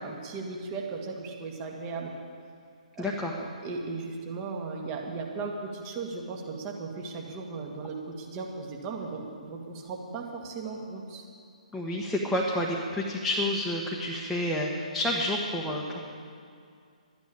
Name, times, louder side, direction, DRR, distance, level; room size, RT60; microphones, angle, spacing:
voice 1, 0.0-2.1 3.0-3.1 3.4-11.3, right 4 dB, 25° right, 1 dB, 2.1 m, -37 dB
voice 2, 3.0-3.3 11.7-16.0, left 1 dB, ahead, -4 dB, 1.3 m, -29 dB
13.0 x 10.5 x 8.7 m, 2.3 s
figure-of-eight pair, 135°, 4 cm